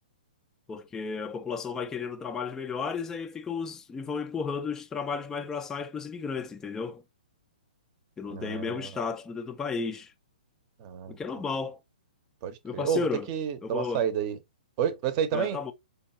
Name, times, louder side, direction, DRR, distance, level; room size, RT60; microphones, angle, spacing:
voice 1, 0.7-7.0 8.2-10.1 11.1-11.8 12.6-13.3 13.6-14.1 15.3-15.7, left 5 dB, 10° left, 0.4 m, -33 dB
voice 2, 8.3-8.9 10.8-11.2 12.4-14.4 14.8-15.6, right 8 dB, 35° right, 0.7 m, -30 dB
5.0 x 2.3 x 2.7 m
hypercardioid pair, 130°, 5 cm